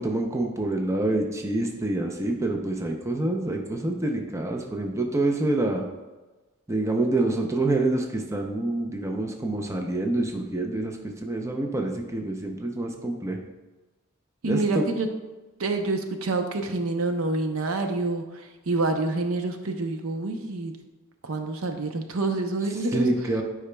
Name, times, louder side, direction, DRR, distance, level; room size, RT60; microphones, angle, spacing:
voice 1, 0.0-5.8 6.7-13.4 14.4-14.8 22.9-23.4, right 2 dB, 15° right, 2 dB, 0.5 m, -27 dB
voice 2, 14.4-15.1 15.6-20.7 21.2-23.1, right 2 dB, 70° right, 5 dB, 0.6 m, -27 dB
9.8 x 4.9 x 2.2 m, 1.2 s
head